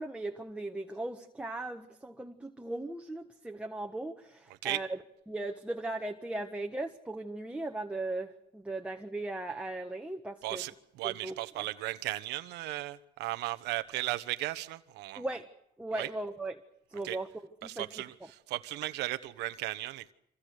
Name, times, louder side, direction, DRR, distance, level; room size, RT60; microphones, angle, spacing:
voice 1, 0.0-5.0 5.3-10.6 11.0-11.6 15.1-15.5 15.8-16.6 16.9-17.3 17.6-18.3, right 2 dB, 5° right, 1.5 m, -38 dB
voice 2, 11.0-15.2 15.9-16.1 17.0-17.2 17.6-18.1 18.5-20.1, right 17 dB, 90° right, 1.2 m, -35 dB
26.5 x 26.0 x 6.6 m
cardioid pair, 110°, 17 cm